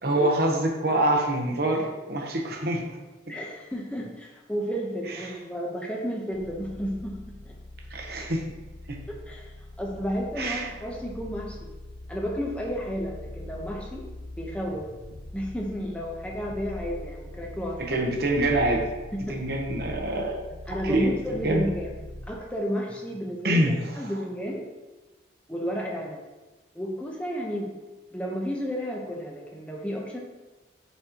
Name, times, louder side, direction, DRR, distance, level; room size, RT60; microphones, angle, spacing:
voice 1, 0.0-2.8 5.1-5.3 7.9-8.5 8.9-9.0 10.4-10.7 17.9-18.8 19.3-20.4 20.8-21.1 21.4-21.7 23.4-23.7, right 1 dB, 55° right, 1 dB, 0.9 m, -25 dB
voice 2, 3.3-7.6 9.1-11.7 12.1-14.1 14.4-14.9 15.3-18.0 19.1-19.4 20.7-22.0 22.3-24.6 25.5-26.2 26.7-27.7 28.1-30.2, equal, 5° left, -1 dB, 0.8 m, -32 dB
sound 1, 6.3-22.5, left 1 dB, 85° left, 0.8 m, -42 dB
8.4 x 4.2 x 3.0 m, 1.2 s
head